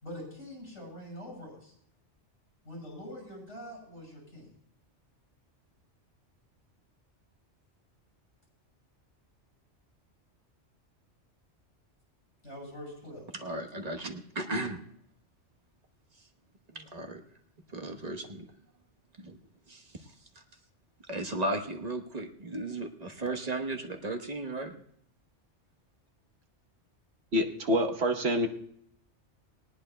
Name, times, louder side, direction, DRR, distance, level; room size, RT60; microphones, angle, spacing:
voice 1, 0.0-1.7 2.6-4.5 12.4-13.2, equal, 85° left, -1 dB, 6.2 m, -44 dB
voice 2, 13.3-14.8 16.7-17.2 17.7-18.5 19.2-19.4 19.7-20.0 21.1-24.7, right 2 dB, 35° right, 4 dB, 1.2 m, -35 dB
voice 3, 27.3-28.5, equal, 65° right, 3 dB, 1.3 m, -26 dB
19.5 x 17.5 x 2.2 m, 0.69 s
omnidirectional pair, 1.2 m